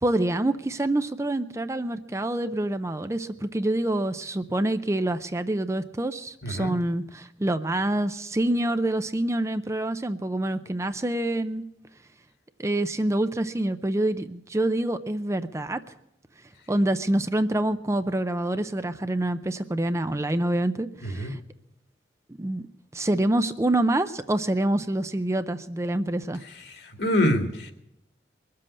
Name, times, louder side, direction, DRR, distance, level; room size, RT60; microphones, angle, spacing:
voice 1, 0.0-11.6 12.6-15.8 16.7-21.4 22.4-22.6 22.9-26.4, right 1 dB, 15° right, 10 dB, 0.5 m, -26 dB
voice 2, 21.0-21.3 26.7-27.7, left 1 dB, 70° left, 4 dB, 2.2 m, -25 dB
22.0 x 7.7 x 8.5 m, 0.82 s
head